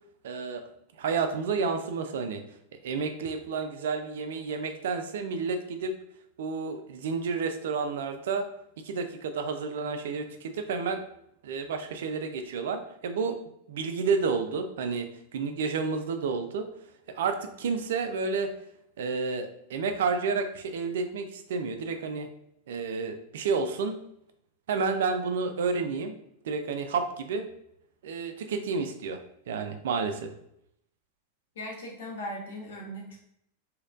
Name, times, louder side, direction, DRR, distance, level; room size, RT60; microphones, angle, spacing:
voice 1, 0.2-0.6 1.0-2.4 2.8-6.0 6.4-8.5 8.8-11.0 11.4-13.4 13.7-16.7 17.1-18.5 19.0-22.3 22.7-24.0 24.7-26.1 26.4-27.5 28.0-29.2 29.5-30.3, right 4 dB, 60° right, 7 dB, 0.3 m, -30 dB
voice 2, 31.5-33.2, equal, 60° left, -1 dB, 0.9 m, -38 dB
3.0 x 2.8 x 2.5 m, 0.76 s
figure-of-eight pair, 90°, 0 cm